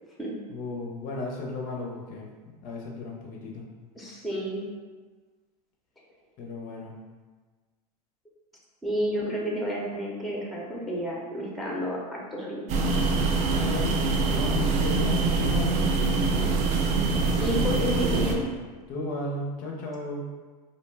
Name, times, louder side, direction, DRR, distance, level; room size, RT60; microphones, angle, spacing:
voice 1, 0.5-2.3 2.6-3.6 6.4-6.9 13.5-16.5 18.9-20.3, left 2 dB, 45° left, -1 dB, 0.5 m, -34 dB
voice 2, 4.0-4.6 8.8-12.6 17.3-18.5, equal, ahead, -4 dB, 0.6 m, -30 dB
sound 1, 12.7-18.3, right 3 dB, 35° right, 0.4 m, -24 dB
2.6 x 2.1 x 3.2 m, 1.4 s
hypercardioid pair, 95°, 20 cm